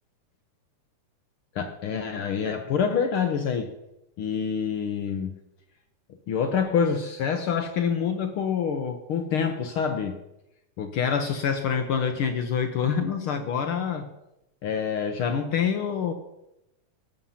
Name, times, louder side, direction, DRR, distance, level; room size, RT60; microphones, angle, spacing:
voice 1, 1.5-3.7 4.2-5.3 6.3-10.2 10.8-14.1 14.6-16.1, left 7 dB, 75° left, 7 dB, 1.2 m, -26 dB
19.0 x 6.7 x 5.7 m, 0.89 s
omnidirectional pair, 3.5 m